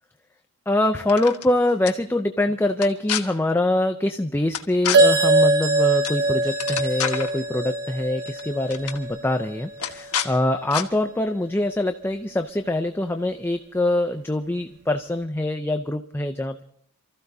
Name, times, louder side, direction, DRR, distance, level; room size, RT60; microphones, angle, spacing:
voice 1, 0.7-16.6, left 1 dB, 10° left, 6 dB, 0.5 m, -24 dB
sound 1, 1.0-1.5 1.9-2.0 2.7-3.2 4.5-5.0 6.0-6.2 6.5-7.3 8.3-8.4 8.7-9.0 9.8-10.3 10.7-10.9, left 8 dB, 85° left, 1.3 m, -28 dB
sound 2, 4.9-9.6, right 2 dB, 50° right, 0.9 m, -22 dB
Bell, 5.0-10.5, equal, 15° right, 1.1 m, -34 dB
28.0 x 14.5 x 2.7 m, 0.69 s
head